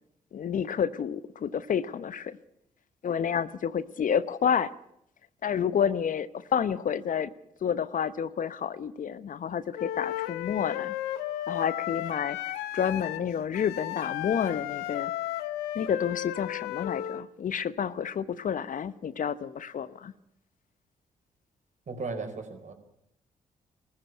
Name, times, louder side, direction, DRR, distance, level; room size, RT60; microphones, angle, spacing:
voice 1, 0.3-2.4 3.0-4.7 5.4-7.3 7.6-11.0 11.5-12.4 12.7-15.1 15.7-20.1, left 8 dB, 55° left, 15 dB, 0.9 m, -29 dB
Wind instrument woodwind instrument, 9.8-17.2, left 13 dB, 85° left, 0.8 m, -34 dB
voice 2, 21.9-22.7, right 3 dB, 50° right, 5 dB, 4.7 m, -36 dB
19.5 x 14.5 x 9.7 m, 0.77 s
hypercardioid pair, 45°, 16 cm